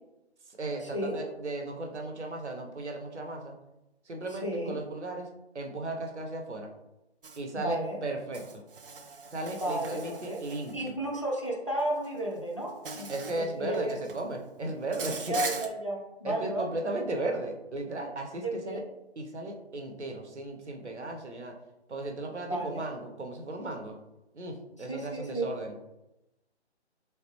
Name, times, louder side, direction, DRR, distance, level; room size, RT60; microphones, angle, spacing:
voice 1, 0.5-3.5 4.0-5.3 5.5-6.7 7.4-8.6 9.3-11.0 13.1-15.4 16.2-18.8 19.2-21.5 21.9-24.0 24.3-25.8, right 2 dB, 80° right, 3 dB, 0.8 m, -36 dB
voice 2, 4.4-4.8 7.5-8.0 9.6-10.4 10.7-14.0 15.3-16.7 17.2-17.3 18.4-18.8 22.5-22.8 24.9-25.5, right 1 dB, 30° left, -3 dB, 0.4 m, -33 dB
Insect, 7.2-7.4 8.3-10.9 12.0-12.2 12.9-13.4 13.7-14.2 14.9-15.7, right 4 dB, 55° right, 0.5 m, -40 dB
3.5 x 3.4 x 2.9 m, 0.95 s
figure-of-eight pair, 150°, 34 cm